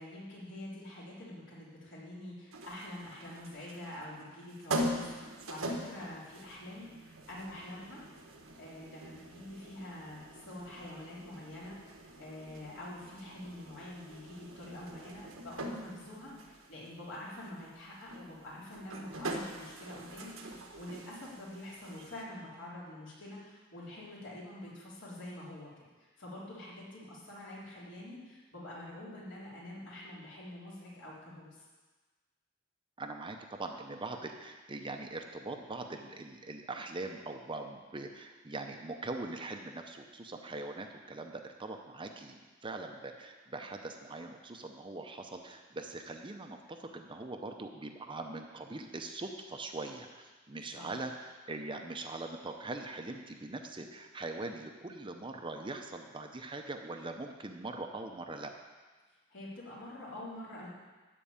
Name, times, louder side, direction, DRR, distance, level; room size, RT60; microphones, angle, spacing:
voice 1, 0.0-8.0 8.6-20.5 20.8-25.7 26.0-31.6 50.6-50.9 59.3-60.7, left 1 dB, 65° left, -7 dB, 3.7 m, -46 dB
sound 1, 2.5-22.2, right 1 dB, 90° right, 1.3 m, -43 dB
voice 2, 33.0-58.5, right 2 dB, 25° right, 4 dB, 0.7 m, -42 dB
13.0 x 4.7 x 8.7 m, 1.3 s
head